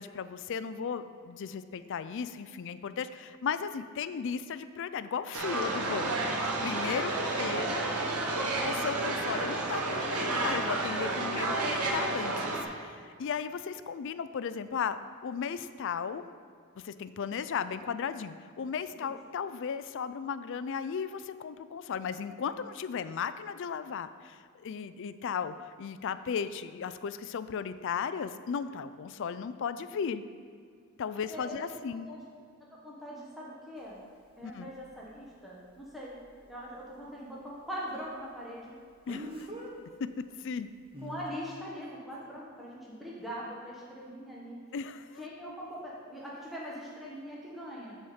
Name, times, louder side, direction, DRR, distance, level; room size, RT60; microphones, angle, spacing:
voice 1, 0.0-6.3 6.6-7.8 8.6-12.6 12.8-16.2 16.8-30.2 31.0-32.1 34.4-34.7 39.1-39.5 40.4-40.7 44.7-45.3, left 6 dB, 55° left, 13 dB, 0.4 m, -36 dB
sound 1, 5.3-12.6, right 2 dB, 90° right, 1.1 m, -31 dB
voice 2, 6.7-7.2 18.9-19.2 31.1-31.6 31.8-32.3 32.8-34.0 34.4-36.2 36.5-38.7 41.0-44.6 45.2-48.0, equal, ahead, -6 dB, 1.1 m, -42 dB
Speech, 33.8-33.9 39.1-39.7 40.9-41.2, right 1 dB, 25° right, 1.1 m, -41 dB
12.5 x 4.3 x 4.9 m, 2.1 s
head